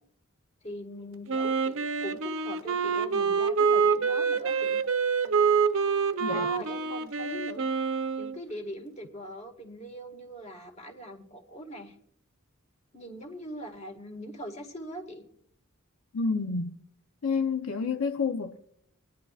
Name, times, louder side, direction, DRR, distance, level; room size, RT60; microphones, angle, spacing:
voice 1, 0.6-4.8 6.3-7.7 8.2-12.0 12.9-15.2, equal, 35° left, 1.7 m, -41 dB
Wind instrument woodwind instrument, 1.3-8.4, right 5 dB, 70° right, 0.7 m, -26 dB
voice 2, 16.1-16.8 17.2-18.6, left 4 dB, 80° left, 0.7 m, -29 dB
25.5 x 10.0 x 2.4 m
head